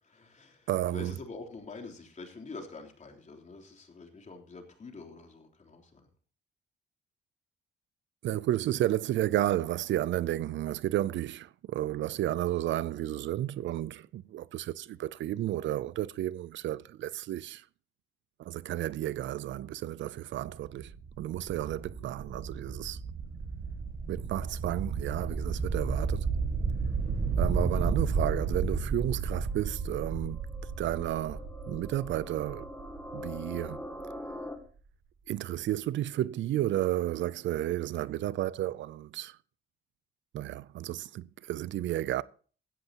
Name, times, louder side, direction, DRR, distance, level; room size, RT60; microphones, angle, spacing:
voice 1, 0.0-6.1, left 3 dB, 35° left, 3.4 m, -46 dB
voice 2, 0.7-1.1 8.2-17.7 18.4-23.0 24.1-26.3 27.4-30.4 30.8-32.7 33.1-33.9 35.3-39.4 40.3-42.2, right 13 dB, 70° right, 0.5 m, -32 dB
sound 1, 20.3-34.1, right 4 dB, 45° right, 2.0 m, -33 dB
sound 2, 29.5-34.6, left 1 dB, 10° left, 2.4 m, -44 dB
16.5 x 13.5 x 3.0 m
cardioid pair, 90°, 20 cm